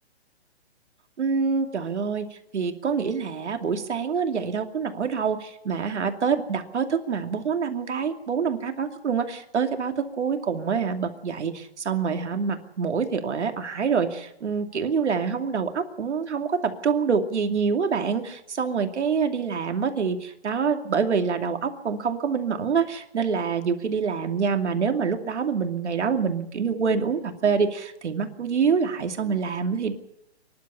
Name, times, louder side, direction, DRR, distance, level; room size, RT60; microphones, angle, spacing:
voice 1, 1.2-29.9, right 6 dB, 80° right, 6 dB, 2.7 m, -26 dB
24.5 x 11.5 x 9.9 m, 0.82 s
hypercardioid pair, 155°, 34 cm